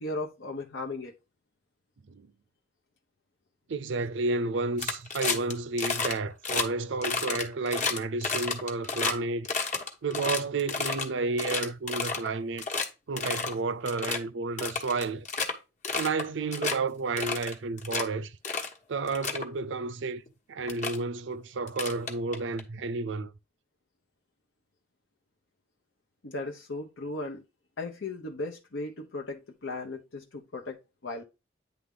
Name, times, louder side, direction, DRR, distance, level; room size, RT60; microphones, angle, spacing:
voice 1, 0.0-1.1 26.2-27.4 27.8-31.2, left 2 dB, 75° left, 0.9 m, -36 dB
voice 2, 3.7-9.5 10.0-12.7 13.1-15.3 15.9-18.4 18.9-20.2 20.5-23.3, right 3 dB, 70° right, 0.5 m, -31 dB
sound 1, 4.8-5.5 5.8-6.1 6.4-6.6 7.0-9.1 9.4-11.0 11.4-12.3 12.6-12.9 13.2-13.5 13.8-14.2 14.6-15.5 15.8-16.2 16.5-16.8 17.2-18.0 18.4-18.7 19.1-19.4 20.3-20.4 20.7-21.0 21.7-22.6, left 4 dB, 40° left, 1.2 m, -30 dB
9.5 x 3.5 x 3.7 m
head